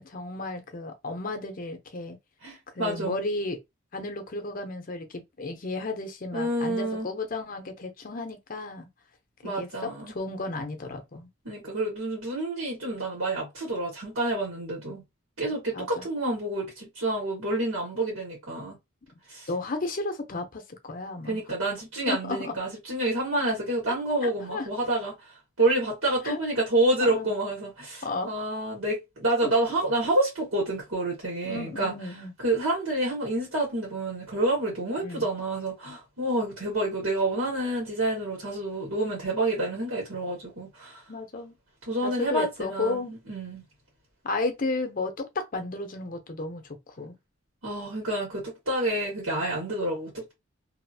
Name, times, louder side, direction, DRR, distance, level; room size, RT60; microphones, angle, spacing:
voice 1, 0.0-2.2 2.7-3.6 3.9-8.9 9.4-11.3 15.7-16.1 19.5-21.4 22.1-22.5 23.9-24.0 24.2-24.7 26.2-26.4 27.0-27.3 28.0-28.3 31.4-32.3 35.0-35.3 41.1-41.5 42.0-43.2 44.2-47.1, left 2 dB, 40° left, 0.6 m, -33 dB
voice 2, 2.4-3.2 6.3-7.1 9.4-10.1 11.4-15.0 15.4-18.7 19.3-19.5 21.3-25.1 25.6-31.9 32.4-41.0 41.9-43.6 47.6-50.3, right 1 dB, 80° right, 1.5 m, -28 dB
2.7 x 2.5 x 2.7 m
head